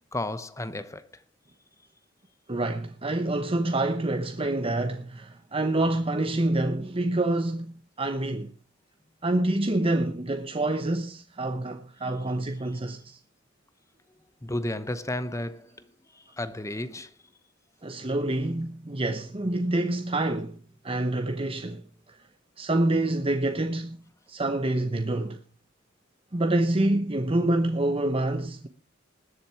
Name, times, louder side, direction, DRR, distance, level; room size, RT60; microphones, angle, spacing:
voice 1, 0.1-1.2 14.4-15.9 16.1-17.1, left 1 dB, 15° left, 0.9 m, -33 dB
voice 2, 2.5-8.5 9.2-13.2 17.8-20.6 20.8-21.8 22.1-22.2 22.6-24.0 24.3-25.4 26.3-28.7, right 2 dB, 30° right, 1.0 m, -27 dB
20.0 x 7.5 x 4.8 m
head